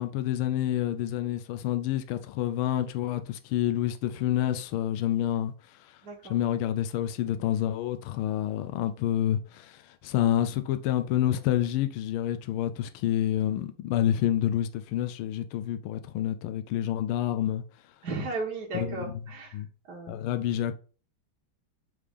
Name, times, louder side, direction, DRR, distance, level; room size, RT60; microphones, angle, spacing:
voice 1, 0.0-6.0 6.3-17.6 18.7-19.1 19.5-19.7 20.1-20.7, left 11 dB, 85° left, 1.4 m, -28 dB
voice 2, 6.0-6.4 18.0-19.6 19.9-20.2, right 3 dB, 55° right, 1.6 m, -35 dB
8.3 x 3.3 x 3.6 m
omnidirectional pair, 2.3 m